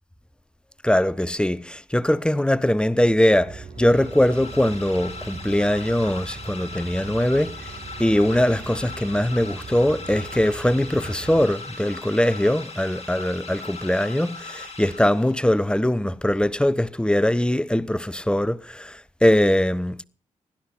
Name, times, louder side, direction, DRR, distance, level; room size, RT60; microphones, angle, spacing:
voice 1, 0.8-7.7 8.0-20.0, left 1 dB, 5° left, 0.9 m, -21 dB
sound 1, 3.3-11.4, right 4 dB, 80° right, 5.6 m, -40 dB
sound 2, 3.8-15.6, left 3 dB, 50° left, 5.5 m, -39 dB
16.5 x 11.5 x 5.8 m
supercardioid pair, 45°, 14 cm